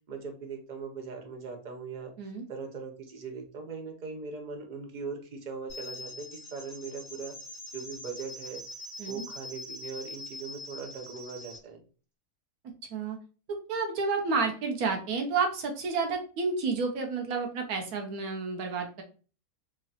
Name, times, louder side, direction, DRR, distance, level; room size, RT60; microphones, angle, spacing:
voice 1, 0.1-2.1 2.5-7.3 7.7-8.6 9.0-11.8, right 5 dB, 45° right, 3 dB, 0.7 m, -40 dB
sound 1, 5.7-11.6, left 1 dB, 5° left, 2.0 m, -43 dB
voice 2, 13.7-19.0, right 4 dB, 80° right, 4 dB, 1.3 m, -30 dB
3.7 x 3.1 x 2.8 m, 0.37 s
omnidirectional pair, 1.5 m